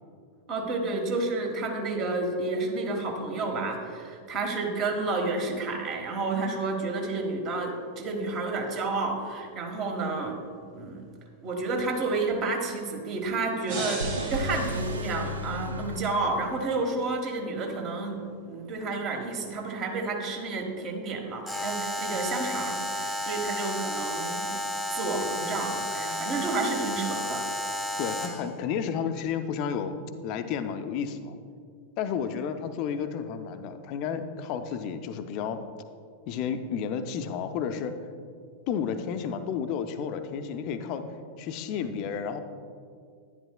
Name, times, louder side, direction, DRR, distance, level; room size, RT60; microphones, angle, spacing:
voice 1, 0.5-10.4 10.7-11.0 11.4-18.2 18.5-24.6 24.9-27.4, right 3 dB, 35° right, 3 dB, 1.3 m, -30 dB
sound 1, 13.7-15.8, right 2 dB, 55° right, 2.4 m, -37 dB
sound 2, 14.0-16.8, equal, 75° right, 0.4 m, -34 dB
Alarm, 21.5-28.5, left 1 dB, ahead, 0.9 m, -32 dB
voice 2, 28.0-30.0 30.2-31.3 32.0-35.6 36.3-37.9 38.7-41.0 41.4-42.4, left 7 dB, 40° left, 9 dB, 0.5 m, -31 dB
11.0 x 10.5 x 2.2 m, 2.2 s
figure-of-eight pair, 90°, 0 cm